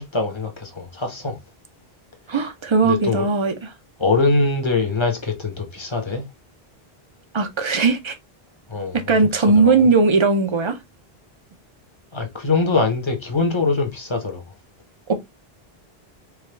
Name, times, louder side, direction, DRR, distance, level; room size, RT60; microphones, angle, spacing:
voice 1, 0.0-1.4 2.8-3.3 4.0-6.2 8.7-9.0 9.3-9.9 12.1-14.4, left 3 dB, 30° left, 0.9 m, -23 dB
voice 2, 2.3-3.5 7.3-8.2 8.9-10.8 15.1-15.2, right 4 dB, 35° right, 0.5 m, -18 dB
4.7 x 2.3 x 3.2 m
omnidirectional pair, 1.0 m